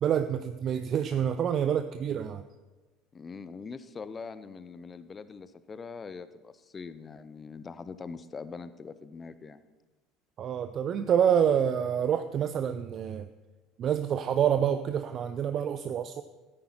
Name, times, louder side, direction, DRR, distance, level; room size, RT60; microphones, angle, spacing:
voice 1, 0.0-2.4 10.4-13.3 13.8-16.2, right 8 dB, 45° right, 11 dB, 0.4 m, -27 dB
voice 2, 3.1-9.6, left 5 dB, 25° left, 14 dB, 0.6 m, -42 dB
14.0 x 8.8 x 4.4 m, 1.2 s
figure-of-eight pair, 65°, 0 cm